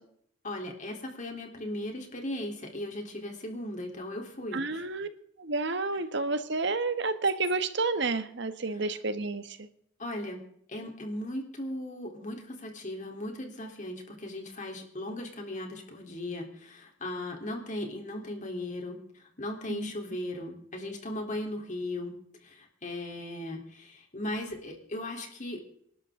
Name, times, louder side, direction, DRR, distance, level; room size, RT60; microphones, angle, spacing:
voice 1, 0.4-4.8 10.0-10.4 10.7-22.1 22.4-25.6, left 1 dB, 40° left, 2 dB, 3.7 m, -37 dB
voice 2, 4.5-5.1 5.4-9.7 19.7-19.9, right 3 dB, 65° right, 11 dB, 1.4 m, -30 dB
27.5 x 12.0 x 3.8 m, 0.69 s
head